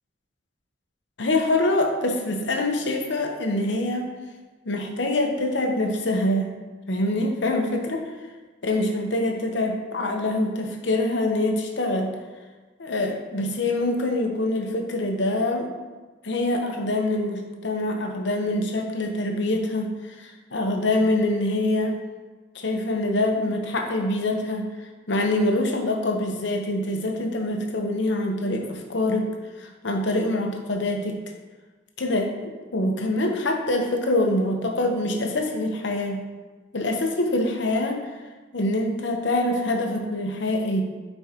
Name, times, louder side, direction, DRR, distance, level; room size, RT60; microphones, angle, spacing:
voice 1, 1.2-4.1 4.6-6.5 6.9-8.1 8.6-12.2 12.8-15.7 16.2-22.0 22.5-24.7 25.1-29.3 29.6-31.2 32.0-36.2 36.7-38.1 38.5-40.8, left 1 dB, 70° left, 2 dB, 0.9 m, -25 dB
9.6 x 4.5 x 2.9 m, 1.3 s
head